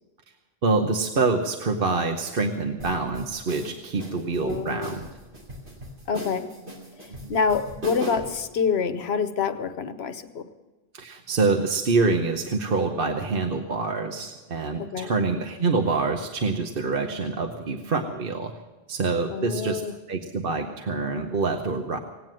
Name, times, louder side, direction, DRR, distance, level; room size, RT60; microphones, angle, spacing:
voice 1, 0.6-5.1 7.2-7.3 10.9-18.5 18.9-19.8 20.1-22.0, right 3 dB, 60° right, 1.1 m, -26 dB
sound 1, 2.8-8.4, right 1 dB, 90° right, 3.2 m, -38 dB
voice 2, 4.4-5.0 6.1-6.5 7.0-10.5 14.8-15.1 19.3-20.0, left 5 dB, 80° left, 1.1 m, -27 dB
18.0 x 9.2 x 7.6 m
omnidirectional pair, 1.1 m